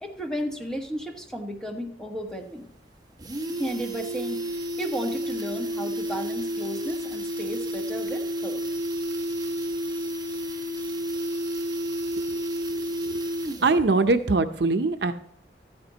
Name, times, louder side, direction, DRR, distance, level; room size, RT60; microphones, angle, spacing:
voice 1, 0.0-2.7 3.5-4.4 4.8-8.6, equal, 5° left, 2 dB, 1.3 m, -34 dB
sound 1, 2.3-2.4 2.7-2.8 3.1-13.9 14.2-14.3, equal, 20° right, 1.1 m, -31 dB
voice 2, 13.6-15.1, right 3 dB, 70° right, 9 dB, 0.7 m, -22 dB
13.0 x 9.7 x 2.9 m, 0.69 s
head